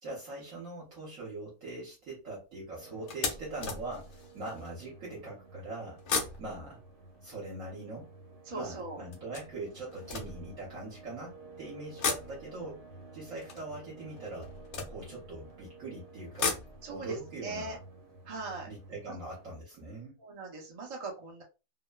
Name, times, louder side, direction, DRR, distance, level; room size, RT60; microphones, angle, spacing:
voice 1, 0.0-6.0 6.4-6.8 7.2-8.1 8.5-12.8 13.1-14.5 14.9-16.6 16.9-17.8 18.7-20.2, right 2 dB, 60° right, -4 dB, 1.2 m, -42 dB
sound 1, 0.7-1.0 1.6-1.8 2.2-2.3 3.1-4.8 5.9-8.2 9.1-11.1 11.8-15.6 16.1-19.1 19.4-19.5 19.8-19.9, left 5 dB, 65° left, 0.7 m, -38 dB
sound 2, 2.8-19.6, right 3 dB, 75° right, 1.3 m, -52 dB
voice 2, 8.5-9.0 16.8-17.2 17.4-17.8 18.3-18.7 19.1-19.2 20.2-21.4, right 3 dB, 40° right, 0 dB, 0.4 m, -39 dB
3.0 x 2.1 x 2.2 m, 0.29 s
omnidirectional pair, 1.7 m